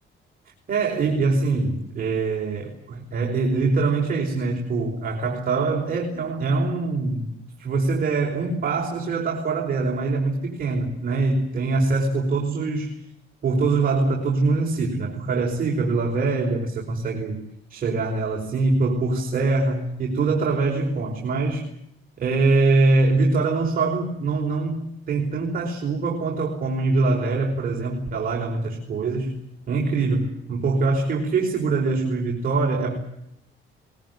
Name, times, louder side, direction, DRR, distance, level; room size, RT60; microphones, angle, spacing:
voice 1, 0.7-7.3 7.6-12.9 13.4-17.4 17.7-21.6 22.2-29.3 29.7-33.0, right 3 dB, 45° right, 0 dB, 5.1 m, -23 dB
23.0 x 21.0 x 9.6 m, 0.78 s
cardioid pair, 145°, 21 cm